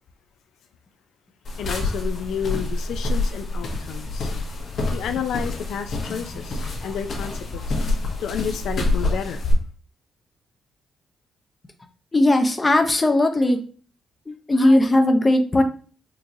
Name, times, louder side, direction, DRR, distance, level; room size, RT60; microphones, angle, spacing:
sound 1, 1.4-9.5, left 2 dB, 60° left, 0.9 m, -27 dB
voice 1, 1.6-4.3 4.9-9.4, left 8 dB, 80° left, 7 dB, 0.3 m, -31 dB
voice 2, 12.1-13.6 14.3-15.6, left 1 dB, 25° left, 6 dB, 0.6 m, -18 dB
3.7 x 2.9 x 2.6 m, 0.40 s
cardioid pair, 85°, 0 cm